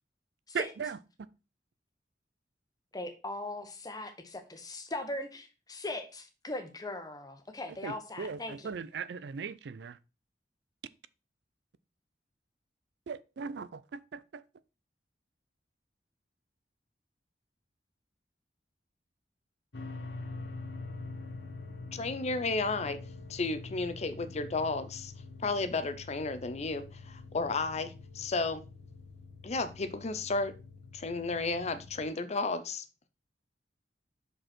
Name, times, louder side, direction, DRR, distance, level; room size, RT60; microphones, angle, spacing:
voice 1, 0.5-1.0 7.8-10.0 13.1-14.4, right 6 dB, 70° right, 0.4 m, -38 dB
voice 2, 2.9-8.7, left 2 dB, 20° left, 1.2 m, -39 dB
sound 1, 19.7-32.1, left 3 dB, 75° left, 1.0 m, -45 dB
voice 3, 21.9-23.0 23.3-25.1 25.4-28.6 29.4-30.5 30.9-32.8, left 3 dB, 40° left, 0.6 m, -33 dB
6.1 x 5.3 x 4.3 m
head